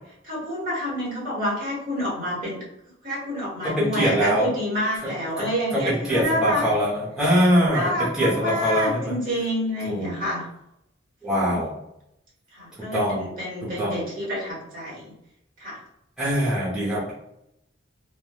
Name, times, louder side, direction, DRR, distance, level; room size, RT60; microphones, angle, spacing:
voice 1, 0.3-2.6 3.0-6.7 7.6-10.4 11.3-11.6 12.5-15.0 15.6-15.8, equal, 45° right, -5 dB, 1.2 m, -28 dB
voice 2, 3.6-4.5 5.4-9.1 9.9-10.1 11.2-11.8 12.9-13.3 13.6-14.0 16.2-17.1, equal, 5° right, -10 dB, 0.7 m, -23 dB
3.1 x 2.2 x 2.2 m, 0.82 s
head